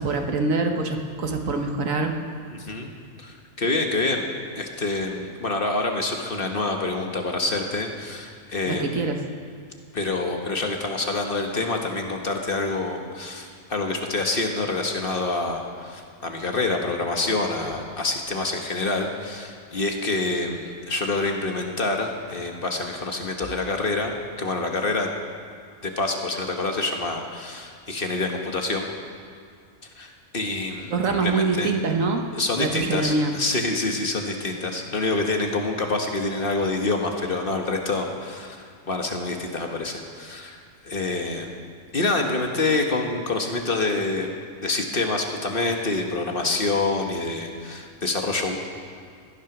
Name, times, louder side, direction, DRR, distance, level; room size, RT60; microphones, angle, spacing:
voice 1, 0.0-2.2 8.7-9.2 30.9-32.3 32.6-33.3, right 3 dB, 80° right, 4 dB, 1.6 m, -24 dB
voice 2, 2.5-2.9 3.2-4.3 4.5-9.0 9.9-25.1 25.8-28.9 30.0-31.7 32.3-40.6 40.8-41.5 41.9-44.3 44.6-48.6, left 3 dB, 45° left, 3 dB, 1.4 m, -27 dB
16.5 x 11.0 x 6.0 m, 2.2 s
omnidirectional pair, 1.4 m